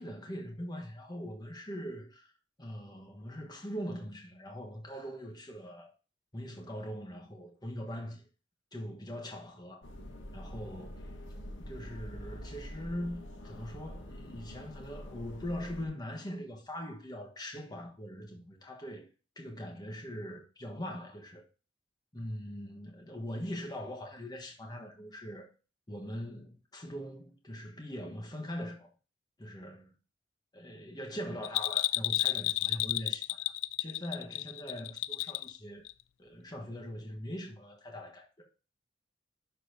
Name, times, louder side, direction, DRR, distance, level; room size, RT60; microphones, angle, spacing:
voice 1, 0.0-2.3 2.6-5.9 6.3-8.3 8.7-9.9 10.3-11.1 11.6-19.1 19.4-21.4 22.1-25.5 25.9-28.9 29.4-29.9 30.5-33.5 33.8-35.8 36.2-38.5, equal, 20° left, 1.3 m, -41 dB
sound 1, 9.8-15.9, equal, 70° left, 1.2 m, -45 dB
Bell, 31.4-35.6 35.9-36.0, left 17 dB, 90° left, 0.3 m, -31 dB
11.5 x 4.3 x 2.8 m
head